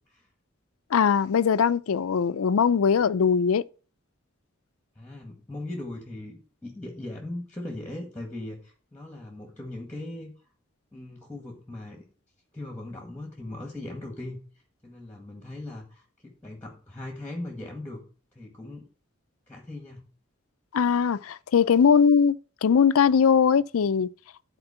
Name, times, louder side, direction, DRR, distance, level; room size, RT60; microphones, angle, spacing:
voice 1, 0.9-3.6 20.7-22.4 22.6-24.1, left 6 dB, 90° left, 0.4 m, -21 dB
voice 2, 4.9-10.3 10.9-12.1 12.5-14.4 14.8-18.0 18.3-18.8 19.5-20.1, left 1 dB, 10° left, 1.7 m, -39 dB
11.5 x 4.4 x 5.6 m
head